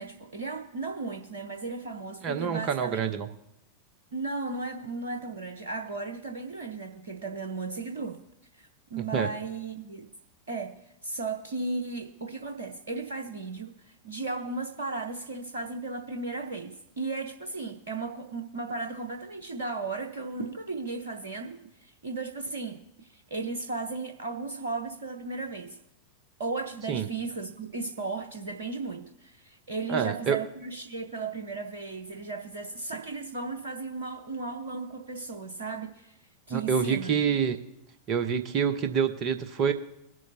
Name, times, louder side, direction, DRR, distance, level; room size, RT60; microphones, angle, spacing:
voice 1, 0.0-3.1 4.1-8.2 8.6-10.1 10.5-25.8 26.4-36.1 36.5-37.2, right 3 dB, 65° right, 5 dB, 0.8 m, -35 dB
voice 2, 2.2-3.3 9.1-9.3 26.9-27.1 29.9-30.4 36.5-37.6 38.1-39.7, right 7 dB, 35° right, 9 dB, 0.9 m, -27 dB
21.5 x 7.7 x 2.8 m, 0.85 s
figure-of-eight pair, 90°, 0 cm